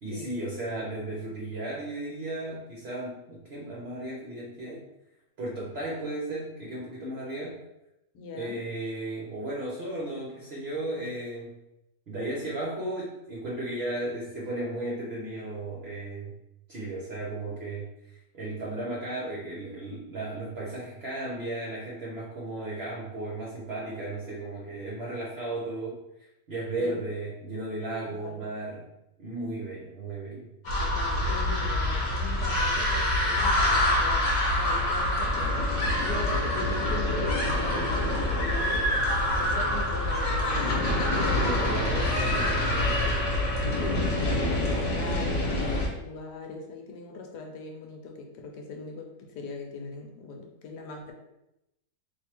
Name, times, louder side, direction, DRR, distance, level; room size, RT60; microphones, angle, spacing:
voice 1, 0.0-4.9 5.4-7.6 8.3-11.6 12.1-16.3 16.7-28.8 29.2-30.5 41.3-42.9, right 2 dB, 55° right, -4 dB, 0.7 m, -35 dB
voice 2, 8.1-8.6 26.8-27.0 28.0-28.4 30.8-34.2 34.6-38.9 39.4-41.8 42.9-43.1 43.8-49.1 49.3-51.1, left 4 dB, 75° left, 2 dB, 1.2 m, -40 dB
sound 1, 30.6-45.9, left 1 dB, 50° left, 1.1 m, -26 dB
3.1 x 2.6 x 4.4 m, 0.89 s
omnidirectional pair, 1.9 m